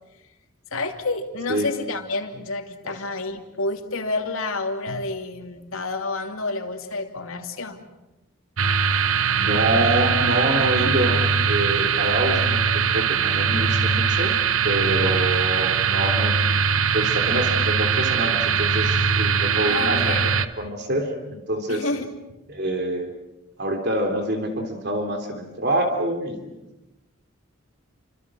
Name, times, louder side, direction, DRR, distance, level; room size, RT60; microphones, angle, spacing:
voice 1, 0.7-7.8 19.6-20.4 21.7-22.1, left 3 dB, 75° left, 4 dB, 2.8 m, -29 dB
sound 1, 8.6-20.5, right 6 dB, 75° right, 1.1 m, -21 dB
voice 2, 9.3-14.3 14.6-20.1 20.6-21.9 22.5-23.1 23.6-26.5, right 1 dB, 50° right, 4 dB, 3.3 m, -26 dB
30.0 x 26.0 x 6.1 m, 0.98 s
head